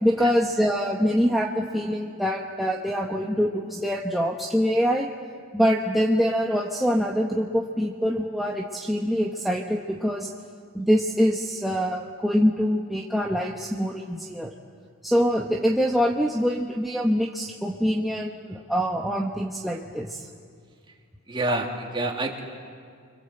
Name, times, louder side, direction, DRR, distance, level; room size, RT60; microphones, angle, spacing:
voice 1, 0.0-5.1 5.5-10.3 10.7-14.5 15.0-20.3, equal, ahead, -2 dB, 1.2 m, -24 dB
voice 2, 21.3-22.4, right 2 dB, 25° right, 0 dB, 3.1 m, -27 dB
30.0 x 25.0 x 7.9 m, 2.2 s
head